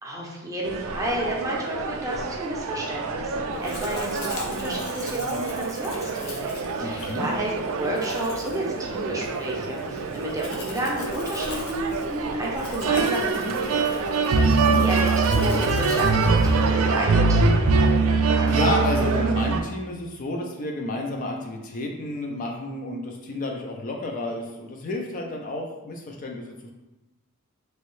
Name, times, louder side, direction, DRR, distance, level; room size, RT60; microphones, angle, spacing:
voice 1, 0.0-6.5 6.8-13.9 14.3-17.7, right 1 dB, 15° right, -3 dB, 0.6 m, -31 dB
sound 1, 0.6-19.6, right 4 dB, 70° right, 0.3 m, -24 dB
Domestic sounds home sounds, 3.6-17.0, left 2 dB, 75° left, 0.7 m, -41 dB
voice 2, 6.8-7.3 14.4-14.8 18.5-26.7, left 2 dB, 40° left, 1 dB, 0.4 m, -30 dB
3.0 x 2.7 x 3.1 m, 1.0 s
head